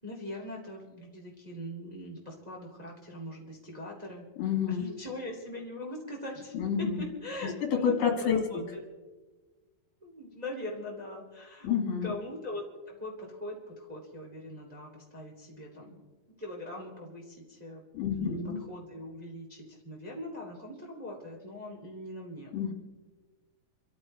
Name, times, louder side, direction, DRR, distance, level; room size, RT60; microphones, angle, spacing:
voice 1, 0.0-4.3 4.7-8.8 10.0-11.7 12.0-16.0 16.3-17.8 18.1-18.4 18.7-22.5, left 1 dB, 15° right, -2 dB, 2.1 m, -41 dB
voice 2, 4.4-4.9 6.5-7.0 7.7-8.6 11.6-12.1 17.9-18.6 22.5-22.7, left 7 dB, 70° left, 2 dB, 3.5 m, -29 dB
28.0 x 14.0 x 3.3 m, 1.2 s
omnidirectional pair, 4.1 m